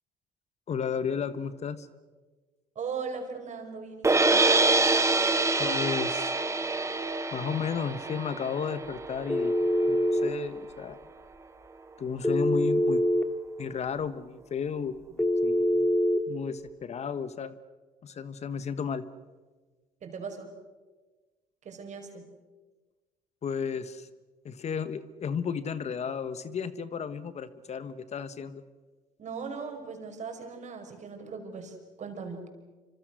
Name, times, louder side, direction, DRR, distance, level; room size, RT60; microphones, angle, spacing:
voice 1, 0.7-1.9 5.6-6.3 7.3-9.5 9.8-11.0 12.0-13.0 13.6-15.9 16.3-17.6 18.0-19.0 23.4-24.1 24.4-28.6, left 6 dB, 50° left, 14 dB, 1.3 m, -33 dB
voice 2, 2.8-4.4 20.0-20.5 21.6-22.3 29.2-32.5, right 5 dB, 55° right, 5 dB, 5.3 m, -39 dB
sound 1, 4.0-10.2, right 3 dB, 20° right, 2.0 m, -26 dB
Telephone, 9.3-10.3 12.2-13.3 15.2-16.2, left 1 dB, 10° left, 2.3 m, -24 dB
26.5 x 25.5 x 6.4 m, 1.3 s
supercardioid pair, 70°, 15 cm